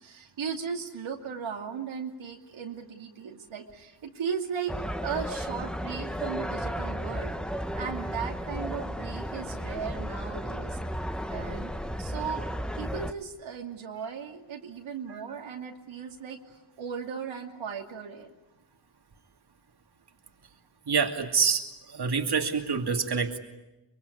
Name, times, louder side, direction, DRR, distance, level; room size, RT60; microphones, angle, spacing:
voice 1, 0.0-7.3 7.8-10.8 11.3-11.7 12.0-12.5 12.8-18.3, right 6 dB, 90° right, 1 dB, 2.8 m, -37 dB
sound 1, 4.7-13.1, equal, ahead, 1.4 m, -34 dB
voice 2, 20.9-23.4, right 5 dB, 55° right, 3 dB, 2.7 m, -27 dB
24.5 x 23.0 x 9.8 m, 1.0 s
cardioid pair, 75°, 46 cm